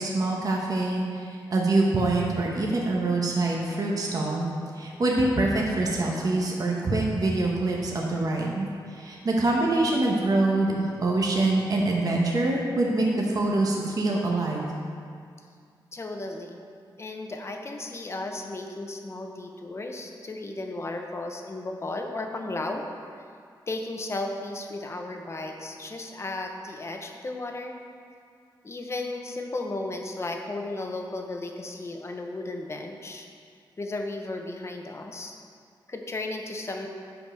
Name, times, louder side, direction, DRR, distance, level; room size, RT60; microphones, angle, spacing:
voice 1, 0.0-4.5 4.8-14.7, right 2 dB, 50° right, -2 dB, 1.2 m, -25 dB
voice 2, 15.9-16.6 17.0-22.8 23.7-27.8 28.6-33.3 33.8-35.3 35.9-36.9, left 2 dB, 35° left, 3 dB, 1.0 m, -34 dB
8.5 x 5.2 x 6.2 m, 2.2 s
cardioid pair, 90°, 8 cm